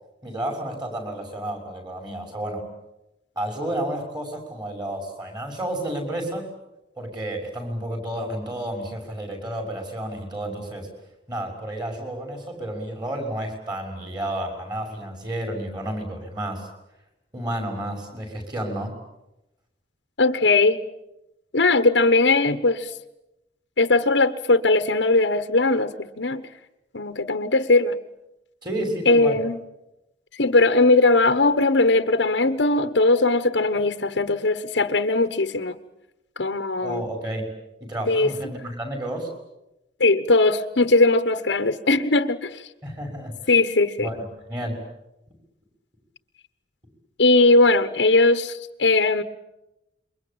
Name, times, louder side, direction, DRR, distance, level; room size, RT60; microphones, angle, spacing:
voice 1, 0.2-2.7 3.3-6.5 7.0-10.9 11.3-16.7 17.3-18.9 28.6-29.4 36.8-37.5 37.8-39.3 42.8-43.5 44.0-44.2 44.5-44.8, right 1 dB, 25° right, 6.5 m, -31 dB
voice 2, 20.2-20.8 21.5-22.9 23.8-26.4 26.9-28.0 29.1-29.6 30.4-35.8 36.4-37.0 38.1-38.3 40.0-42.6 43.5-44.1 47.2-49.2, left 2 dB, 80° left, 1.2 m, -19 dB
28.0 x 23.5 x 8.9 m
head